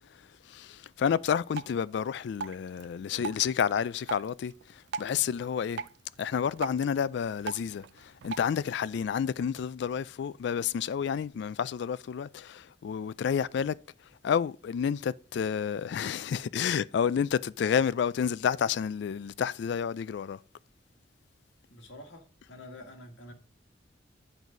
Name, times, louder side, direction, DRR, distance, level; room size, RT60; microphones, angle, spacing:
voice 1, 0.5-4.5 5.0-5.8 6.2-13.7 14.2-20.4, left 7 dB, 65° left, 0.3 m, -30 dB
Drip, 1.5-8.5, right 5 dB, 60° right, 0.3 m, -42 dB
voice 2, 21.7-23.3, left 1 dB, 90° left, 1.5 m, -47 dB
9.2 x 4.0 x 4.7 m
head